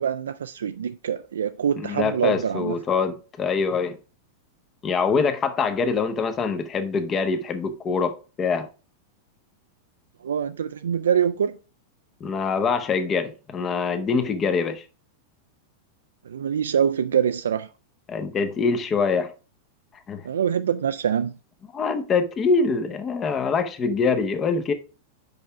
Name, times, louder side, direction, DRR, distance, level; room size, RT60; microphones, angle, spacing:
voice 1, 0.0-2.8 10.2-11.6 16.3-17.7 20.2-21.3, right 8 dB, 70° right, 0.3 m, -24 dB
voice 2, 1.8-4.0 4.8-8.7 12.2-14.8 18.1-19.3 20.1-20.2 21.7-24.7, left 5 dB, 25° left, 0.9 m, -24 dB
5.4 x 5.3 x 5.9 m
figure-of-eight pair, 95°, 0 cm